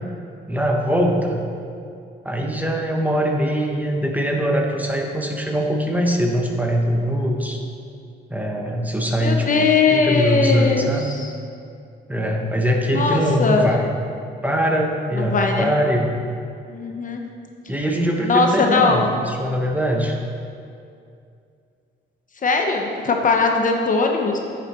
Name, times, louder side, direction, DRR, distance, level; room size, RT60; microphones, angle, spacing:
voice 1, 0.5-1.5 2.2-7.6 8.3-11.1 12.1-14.0 14.4-16.2 17.7-20.1, equal, 10° right, 1 dB, 1.2 m, -22 dB
voice 2, 9.2-11.3 12.9-13.7 15.2-15.7 16.7-17.2 18.3-19.1 22.4-24.4, left 4 dB, 40° left, 2 dB, 1.0 m, -20 dB
10.0 x 7.0 x 4.4 m, 2.4 s
cardioid pair, 90°, 20 cm